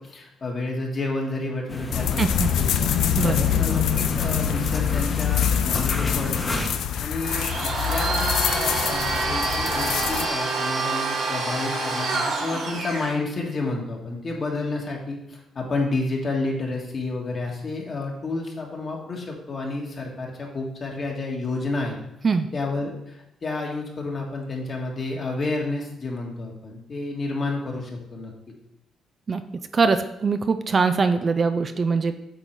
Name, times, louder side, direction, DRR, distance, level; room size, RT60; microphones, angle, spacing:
voice 1, 0.0-2.2 2.6-2.9 3.2-6.6 7.0-7.5 7.9-21.9 22.5-28.3, left 2 dB, 40° left, 0 dB, 1.7 m, -30 dB
sound 1, 1.7-6.7, left 1 dB, 25° left, 1.2 m, -32 dB
sound 2, 1.9-10.3, left 9 dB, 80° left, 0.4 m, -25 dB
voice 2, 2.2-2.5 3.2-3.6 22.2-22.5 29.3-29.4 29.7-32.2, right 4 dB, 40° right, 10 dB, 0.4 m, -22 dB
Domestic sounds home sounds, 7.2-13.1, right 3 dB, 65° right, 2.2 m, -27 dB
8.2 x 3.8 x 4.6 m, 0.85 s
cardioid pair, 90°, 0 cm